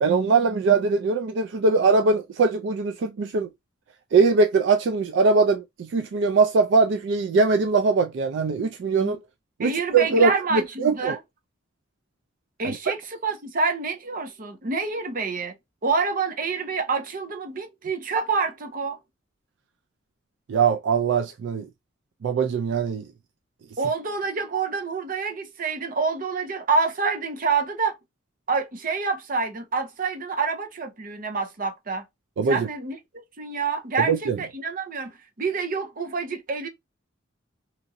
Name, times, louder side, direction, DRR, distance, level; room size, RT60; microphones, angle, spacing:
voice 1, 0.0-3.5 4.1-9.2 9.6-11.2 12.6-12.8 20.5-21.7 22.2-23.1 32.4-32.7 34.1-34.4, right 4 dB, 65° right, 0.3 m, -21 dB
voice 2, 9.6-11.2 12.6-15.5 15.8-19.0 23.8-28.0 28.5-32.0 32.5-35.1 35.4-36.7, right 4 dB, 45° right, 0.7 m, -27 dB
2.9 x 2.5 x 2.5 m
head